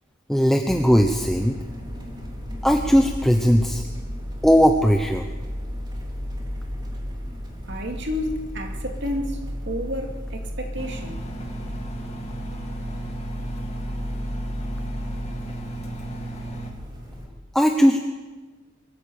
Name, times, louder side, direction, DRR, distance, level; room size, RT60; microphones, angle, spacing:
voice 1, 0.3-1.6 2.6-3.8 4.4-5.3 17.5-18.0, equal, ahead, 0.9 m, -18 dB
sound 1, 0.7-17.3, equal, 20° right, 3.4 m, -34 dB
voice 2, 7.7-11.2, left 1 dB, 55° right, 2.5 m, -31 dB
Engine, 10.8-16.7, right 2 dB, 30° left, 2.9 m, -36 dB
23.5 x 14.0 x 8.8 m
head